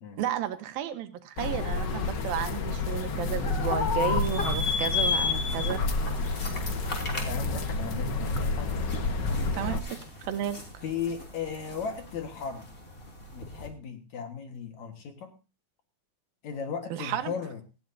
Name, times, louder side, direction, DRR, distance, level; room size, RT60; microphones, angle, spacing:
voice 1, 0.2-5.8 9.5-9.8 10.2-10.6 16.9-17.3, right 10 dB, 80° right, 9 dB, 3.0 m, -32 dB
sound 1, 1.4-9.8, left 3 dB, 80° left, 0.9 m, -29 dB
sound 2, 4.2-13.7, left 4 dB, 25° left, 3.0 m, -35 dB
voice 2, 7.2-8.8 10.8-12.7 13.3-15.3 16.4-17.6, left 6 dB, 60° left, 6 dB, 2.6 m, -36 dB
18.5 x 15.5 x 2.7 m, 0.31 s
omnidirectional pair, 4.1 m